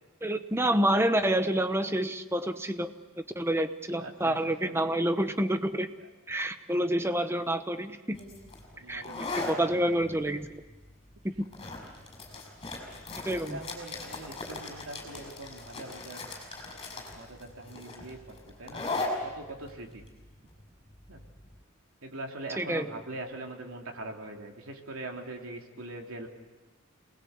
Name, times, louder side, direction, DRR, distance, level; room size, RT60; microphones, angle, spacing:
voice 1, 0.2-2.9 3.4-5.9 6.3-8.2 8.9-10.6 11.2-11.3 13.2-13.6 22.6-22.9, right 1 dB, 10° right, 9 dB, 1.0 m, -28 dB
voice 2, 3.9-4.7 8.7-9.7 10.2-10.3 13.2-16.3 17.1-18.8 19.2-20.0 21.1-21.2 22.0-26.3, right 2 dB, 75° right, 2 dB, 3.2 m, -42 dB
sound 1, 8.1-21.5, left 2 dB, 25° left, 6.2 m, -39 dB
28.0 x 20.5 x 8.2 m, 1.2 s
head